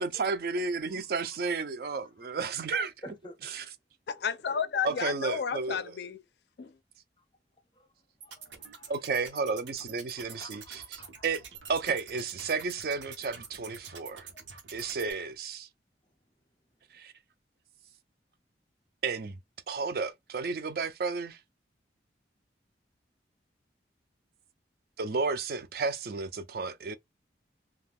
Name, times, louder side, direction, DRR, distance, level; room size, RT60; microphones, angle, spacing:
voice 1, 0.0-2.9 3.4-3.6 4.8-5.8 8.9-11.4 11.7-14.3 14.7-15.7 16.9-17.1 19.0-19.4 19.7-21.4 25.0-27.0, right 4 dB, 55° right, 0.4 m, -32 dB
voice 2, 3.0-3.4 7.7-7.9 8.2-8.9 10.3-11.3 11.9-12.0 14.3-14.4 14.8-14.9, equal, 25° left, 0.6 m, -49 dB
voice 3, 4.1-6.2 6.6-6.7, left 7 dB, 65° left, 0.4 m, -32 dB
sound 1, 8.2-15.1, right 6 dB, 90° right, 0.8 m, -47 dB
2.3 x 2.2 x 3.3 m
head